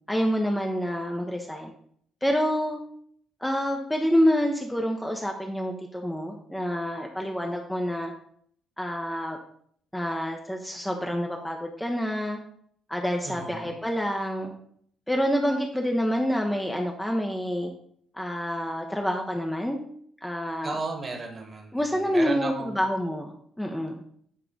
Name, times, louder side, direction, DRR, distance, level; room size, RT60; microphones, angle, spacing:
voice 1, 0.1-1.7 2.2-2.8 3.4-8.1 8.8-9.4 9.9-12.4 12.9-14.5 15.1-17.7 18.1-19.8 20.2-20.8 21.7-24.0, equal, 5° left, 1 dB, 0.7 m, -27 dB
voice 2, 13.2-13.7 20.6-22.8, right 3 dB, 30° right, 2 dB, 1.4 m, -34 dB
8.2 x 3.3 x 3.7 m, 0.65 s
figure-of-eight pair, 45°, 0 cm